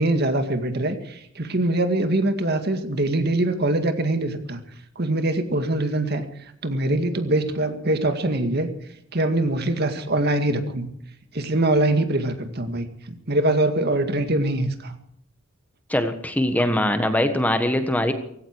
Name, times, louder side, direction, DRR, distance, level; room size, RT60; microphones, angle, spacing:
voice 1, 0.0-4.6 5.0-6.2 6.6-8.7 9.1-10.9 11.3-14.9, right 1 dB, 55° right, 8 dB, 2.0 m, -23 dB
voice 2, 15.9-18.1, left 1 dB, 10° left, 8 dB, 1.4 m, -22 dB
17.5 x 16.5 x 4.7 m, 0.72 s
head